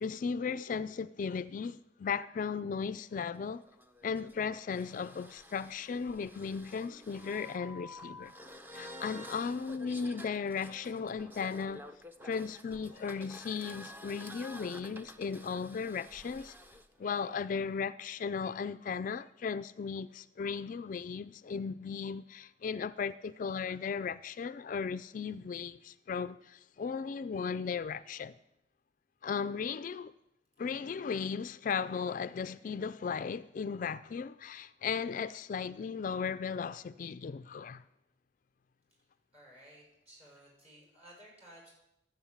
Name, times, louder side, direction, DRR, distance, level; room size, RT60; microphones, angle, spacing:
voice 1, 0.0-3.6 4.0-8.3 8.7-11.8 12.2-16.6 17.0-28.3 29.2-30.1 30.6-37.8, left 6 dB, 45° left, 0.3 m, -36 dB
sound 1, 3.1-16.9, left 1 dB, 10° right, 0.7 m, -50 dB
voice 2, 39.3-41.7, right 1 dB, 35° right, 6.4 m, -56 dB
13.0 x 7.7 x 7.2 m
head